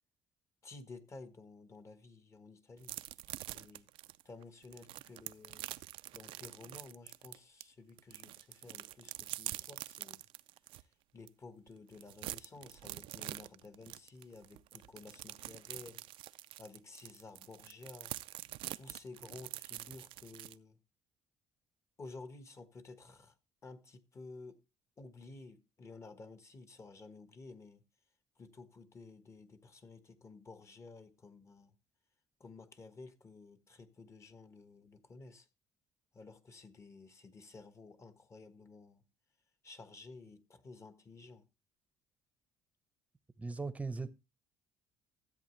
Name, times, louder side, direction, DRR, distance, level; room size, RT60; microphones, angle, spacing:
voice 1, 0.6-3.0 3.5-3.9 4.2-5.7 6.1-10.3 11.1-16.0 16.6-18.1 18.7-20.8 22.0-23.3 23.6-24.6 25.0-27.8 28.4-31.7 32.4-35.5 36.1-39.0 39.6-41.4, left 3 dB, 30° left, 1.4 m, -53 dB
sound 1, 2.8-7.6 8.0-10.8 11.3-11.4 11.7-20.5, right 16 dB, 75° right, 0.4 m, -45 dB
voice 2, 43.4-44.1, right 3 dB, 15° right, 0.8 m, -38 dB
13.0 x 8.1 x 3.2 m
cardioid pair, 95°, 9 cm